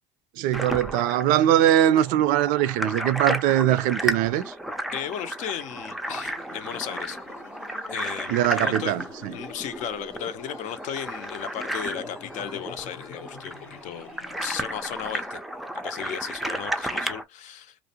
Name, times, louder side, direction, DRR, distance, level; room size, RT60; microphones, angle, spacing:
voice 1, 0.4-4.5 8.3-9.3, right 12 dB, 65° right, 0.4 m, -21 dB
sound 1, 0.5-17.2, right 1 dB, ahead, 0.4 m, -33 dB
voice 2, 4.9-7.2 7.9-9.0 9.3-14.1 14.4-15.4 15.8-17.8, left 9 dB, 60° left, 0.5 m, -35 dB
sound 2, 6.0-15.4, left 5 dB, 80° left, 0.8 m, -47 dB
2.5 x 2.1 x 2.7 m
supercardioid pair, 90°, 14 cm